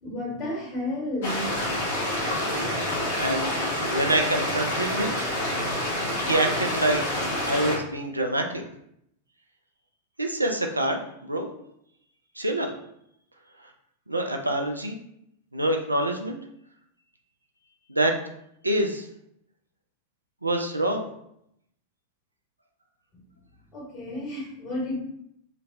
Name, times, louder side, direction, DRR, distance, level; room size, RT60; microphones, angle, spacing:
voice 1, 0.0-1.9 23.1-23.2 23.7-25.0, left 1 dB, 35° left, -3 dB, 1.5 m, -32 dB
sound 1, 1.2-7.8, left 1 dB, 55° left, 0.9 m, -27 dB
voice 2, 3.2-5.1 6.3-7.0 7.4-8.6 10.2-11.5 12.4-12.7 14.1-15.0 15.5-16.4 17.9-18.1 18.6-19.1 20.4-21.1, right 1 dB, 85° right, 3 dB, 0.3 m, -26 dB
3.8 x 2.1 x 2.6 m, 0.74 s
figure-of-eight pair, 90°, 0 cm